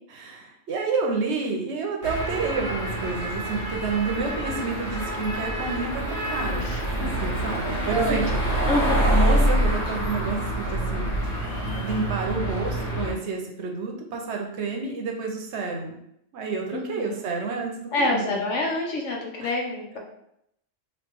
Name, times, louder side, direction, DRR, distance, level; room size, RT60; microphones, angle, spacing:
voice 1, 0.1-8.6 9.0-11.1 11.8-16.0 16.3-18.4 19.4-19.5, right 4 dB, 70° right, 2 dB, 0.9 m, -29 dB
sound 1, 2.0-13.1, right 1 dB, 55° left, 1.5 m, -26 dB
voice 2, 6.6-7.3 8.7-9.1 16.7-17.2 17.9-20.0, left 2 dB, 75° left, 0 dB, 1.1 m, -27 dB
3.0 x 2.8 x 3.4 m, 0.75 s
omnidirectional pair, 1.3 m